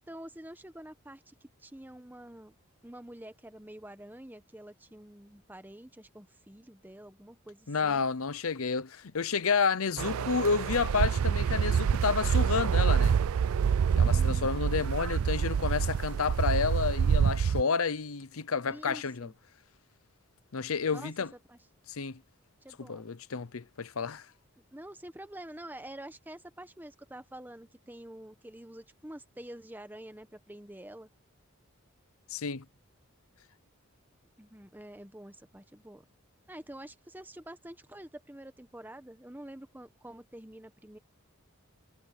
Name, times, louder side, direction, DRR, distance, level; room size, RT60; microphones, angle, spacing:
voice 1, 0.0-2.6 2.8-8.1 14.1-14.7 18.7-19.3 20.9-21.6 22.6-23.1 24.7-31.1 34.4-36.0 36.5-41.0, right 1 dB, 10° right, 1.0 m, -47 dB
voice 2, 7.7-13.2 14.0-19.3 20.5-21.3 21.9-22.2 22.8-24.3 32.3-32.6, left 5 dB, 85° left, 0.8 m, -30 dB
sound 1, 10.0-17.6, right 7 dB, 80° right, 0.4 m, -26 dB
head